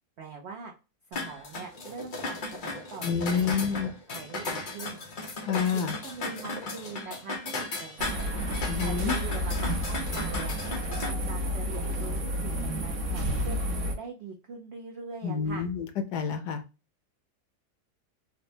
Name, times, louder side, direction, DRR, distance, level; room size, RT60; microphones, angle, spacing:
voice 1, 0.2-0.7 1.1-3.1 3.5-5.0 5.7-8.2 8.8-10.5 11.0-12.5 12.8-13.6 14.0-15.7, right 5 dB, 90° right, 1 dB, 0.5 m, -42 dB
sound 1, 1.1-11.1, left 3 dB, 90° left, 0.4 m, -36 dB
voice 2, 3.0-3.9 5.5-5.9 8.7-9.1 15.2-15.9 16.1-16.6, left 6 dB, 75° left, 8 dB, 1.1 m, -28 dB
sound 2, 8.0-13.9, equal, 55° right, 1.0 m, -31 dB
4.0 x 2.1 x 2.6 m, 0.30 s
omnidirectional pair, 1.9 m